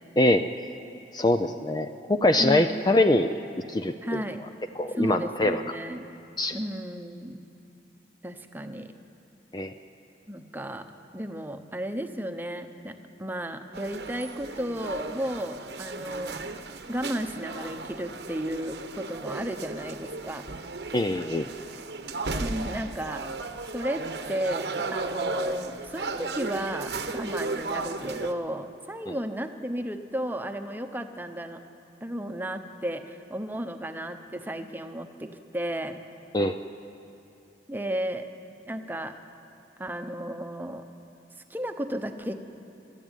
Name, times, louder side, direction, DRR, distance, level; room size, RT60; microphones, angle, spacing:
voice 1, 1.1-3.3 3.7-4.2 4.8-5.6 6.4-6.6 9.5-9.7 20.9-21.5 29.1-29.2 36.3-36.6, left 1 dB, 25° left, 8 dB, 0.5 m, -23 dB
voice 2, 2.4-3.0 4.0-4.4 4.9-6.1 6.5-7.4 8.2-8.9 10.3-10.8 11.1-12.9 13.2-16.4 16.9-20.4 22.4-23.2 23.7-31.6 32.0-36.0 37.7-38.3 38.7-39.1 39.8-40.8 41.5-42.3, equal, 10° right, 7 dB, 0.9 m, -33 dB
sound 1, 13.7-28.3, right 3 dB, 70° right, 1.0 m, -35 dB
26.0 x 12.5 x 9.1 m, 2.7 s
head